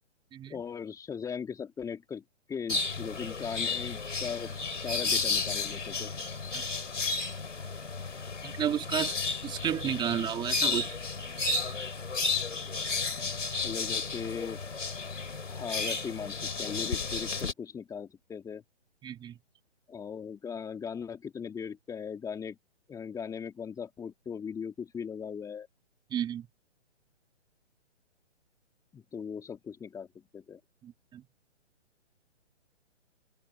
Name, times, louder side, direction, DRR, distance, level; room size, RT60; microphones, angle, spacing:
voice 1, 0.5-2.2 2.5-6.1 13.6-14.6 15.5-18.6 19.9-22.6 22.9-25.7 28.9-30.1 30.3-30.6, left 6 dB, 10° left, 2.6 m, -39 dB
Pet shop, 2.7-17.5, left 4 dB, 90° left, 4.6 m, -33 dB
voice 2, 8.4-9.2 9.4-10.9 19.0-19.3 26.1-26.5 30.8-31.2, right 9 dB, 15° right, 2.4 m, -32 dB
hypercardioid pair, 145°, 36 cm